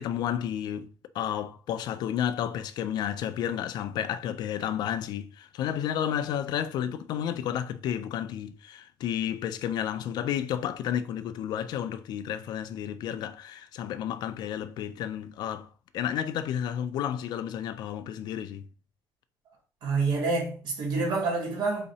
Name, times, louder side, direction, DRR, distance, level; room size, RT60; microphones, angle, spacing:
voice 1, 0.0-18.7, left 10 dB, 75° left, 0.5 m, -31 dB
voice 2, 19.8-21.9, right 3 dB, 85° right, 1.7 m, -27 dB
3.7 x 3.0 x 4.1 m
cardioid pair, 170°, 7 cm